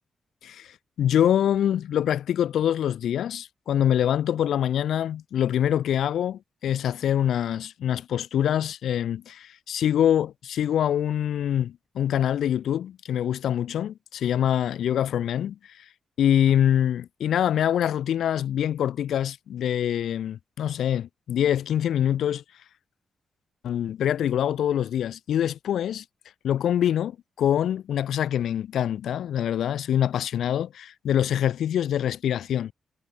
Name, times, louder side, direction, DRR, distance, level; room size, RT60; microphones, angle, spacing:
voice 1, 0.4-15.8 16.2-22.4 23.6-26.0 26.4-32.7, left 10 dB, 90° left, 5.1 m, -25 dB
wide cardioid pair, 140°, 0 cm